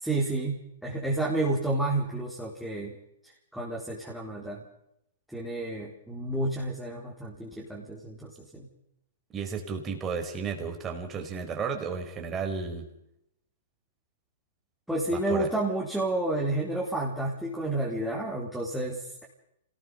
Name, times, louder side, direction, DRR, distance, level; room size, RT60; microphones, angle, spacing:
voice 1, 0.0-2.9 3.2-4.6 5.3-8.7 14.9-19.2, right 2 dB, ahead, -6 dB, 4.3 m, -30 dB
voice 2, 9.3-12.8 15.1-15.5, right 5 dB, 20° right, 3 dB, 4.9 m, -33 dB
26.5 x 19.5 x 5.7 m, 0.80 s
hypercardioid pair, 140°, 0 cm